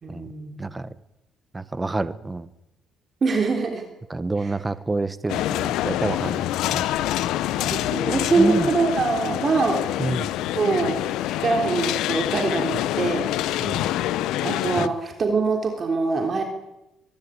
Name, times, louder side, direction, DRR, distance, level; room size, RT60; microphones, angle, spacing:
voice 1, 0.0-0.6 3.2-3.8 4.4-4.6 7.6-9.9 10.5-13.3 14.4-16.4, right 4 dB, 40° right, 4 dB, 3.4 m, -24 dB
voice 2, 0.6-0.9 1.5-2.5 4.1-6.8 8.4-8.7 10.0-10.3 13.6-13.9 14.8-14.9, right 2 dB, 15° right, 16 dB, 1.2 m, -28 dB
sound 1, 5.3-14.9, left 14 dB, 80° left, 0.9 m, -26 dB
23.0 x 12.0 x 9.8 m, 0.95 s
cardioid pair, 95°, 0 cm